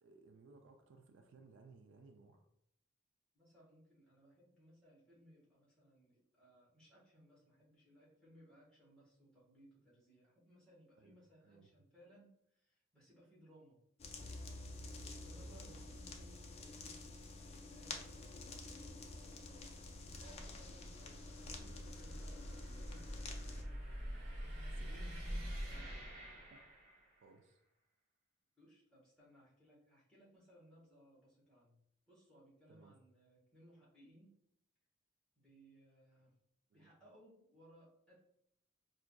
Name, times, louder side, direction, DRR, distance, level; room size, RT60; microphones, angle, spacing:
voice 1, 0.0-2.5 11.0-11.2 11.4-11.7 15.4-15.9 21.5-21.8 24.7-25.2 26.5-26.6 27.2-27.6 32.7-33.0 36.7-36.9, right 3 dB, 65° right, 5 dB, 0.3 m, -61 dB
voice 2, 3.3-13.8 15.0-17.0 17.3-18.8 20.0-23.8 25.6-26.0 28.6-31.8 32.1-34.4 35.3-36.3 36.7-38.2, equal, 5° left, -8 dB, 1.3 m, -64 dB
sound 1, 14.0-23.6, left 3 dB, 30° left, 0.4 m, -49 dB
sound 2, 16.0-27.3, equal, 80° right, 1.3 m, -48 dB
4.6 x 2.5 x 2.2 m, 0.75 s
head